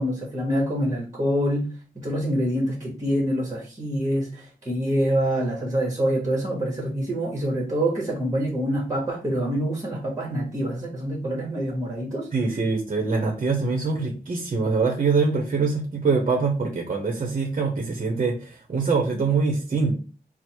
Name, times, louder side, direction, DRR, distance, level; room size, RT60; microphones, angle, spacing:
voice 1, 0.0-12.3, equal, 20° right, 1.1 m, -26 dB
voice 2, 12.3-20.0, right 4 dB, 45° right, 0.8 m, -24 dB
4.5 x 2.0 x 4.5 m
wide cardioid pair, 175°, 16 cm